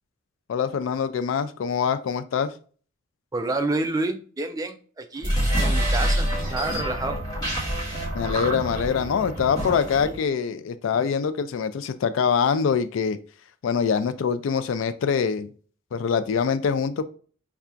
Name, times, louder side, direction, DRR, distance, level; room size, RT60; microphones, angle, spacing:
voice 1, 0.5-2.5 8.1-13.2 13.6-15.5 15.9-17.0, left 6 dB, 75° left, 11 dB, 0.3 m, -24 dB
voice 2, 3.3-7.2, right 2 dB, 20° right, 6 dB, 0.4 m, -29 dB
sound 1, 5.2-10.2, equal, 20° left, 1.6 m, -26 dB
5.5 x 2.3 x 2.4 m, 0.43 s
head